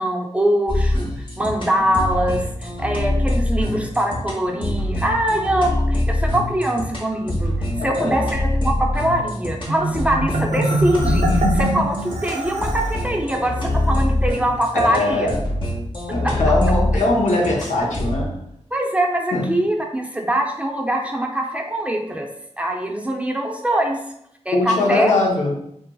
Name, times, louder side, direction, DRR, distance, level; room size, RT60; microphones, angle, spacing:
voice 1, 0.0-7.5 7.8-15.3 16.2-16.3 18.7-22.3 22.6-24.0 24.5-25.1, right 1 dB, 10° right, 1 dB, 0.4 m, -23 dB
sound 1, 0.7-18.2, left 1 dB, 45° left, 0.8 m, -24 dB
voice 2, 7.8-8.2 14.7-15.4 16.1-18.4 19.3-19.5 24.5-25.5, left 2 dB, 85° left, -2 dB, 0.7 m, -21 dB
Marimba xylophone, 9.7-13.0, right 1 dB, 80° right, 0.5 m, -23 dB
2.9 x 2.6 x 2.2 m, 0.74 s
wide cardioid pair, 60°, 12 cm